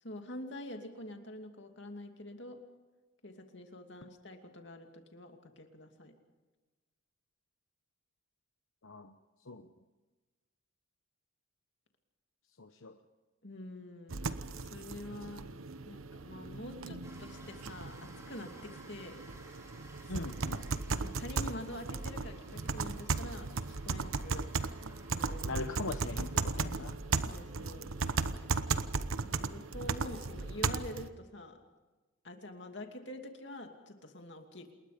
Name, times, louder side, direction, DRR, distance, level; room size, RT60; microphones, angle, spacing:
voice 1, 0.0-2.6 3.2-6.1 13.4-15.5 15.8-19.2 20.2-20.3 20.5-20.6 21.0-23.5 23.8-24.5 25.1-25.6 26.4-26.7 27.3-27.9 29.2-31.6 32.2-34.7, left 1 dB, 55° left, 4 dB, 2.7 m, -46 dB
voice 2, 8.8-9.2 9.5-9.7 12.6-13.0 20.1-20.6 25.4-27.0, left 3 dB, 80° left, 7 dB, 1.0 m, -41 dB
sound 1, 14.1-31.1, right 4 dB, 90° right, 1.0 m, -36 dB
sound 2, 17.0-26.7, right 2 dB, 15° right, 3.8 m, -57 dB
28.0 x 21.0 x 5.2 m, 1.2 s
head